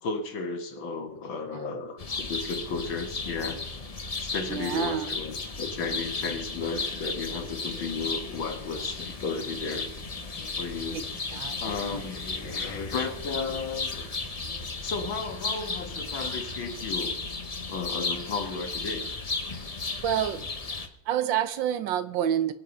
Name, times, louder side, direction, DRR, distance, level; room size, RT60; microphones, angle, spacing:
voice 1, 0.0-3.6 4.2-9.9 10.6-11.0 11.6-14.0 14.8-17.1 17.7-19.0, left 4 dB, 75° left, 2.4 m, -34 dB
sound 1, 2.0-20.9, left 3 dB, 40° left, 0.5 m, -34 dB
voice 2, 4.5-5.1 10.9-11.0 11.3-12.0 20.0-20.5 21.1-22.5, right 10 dB, 70° right, 1.4 m, -28 dB
Computer keyboard, 6.9-16.1, right 3 dB, 5° right, 1.8 m, -53 dB
23.0 x 8.0 x 5.3 m
omnidirectional pair, 2.2 m